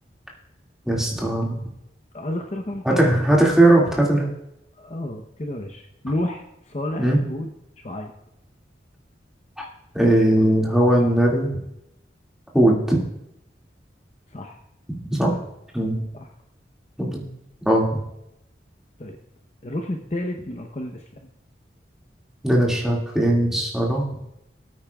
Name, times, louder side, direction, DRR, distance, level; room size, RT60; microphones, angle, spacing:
voice 1, 0.9-1.6 2.9-4.3 7.0-7.2 9.6-9.7 9.9-11.5 12.5-13.0 15.1-15.3 15.7-15.9 17.0-17.3 17.7-18.0 22.4-24.0, right 1 dB, 5° right, -3 dB, 2.1 m, -19 dB
voice 2, 2.1-3.4 4.8-8.1 14.3-14.6 16.1-16.3 19.0-19.2 19.6-21.0, left 1 dB, 35° left, 3 dB, 0.8 m, -31 dB
19.5 x 8.9 x 2.3 m, 0.83 s
head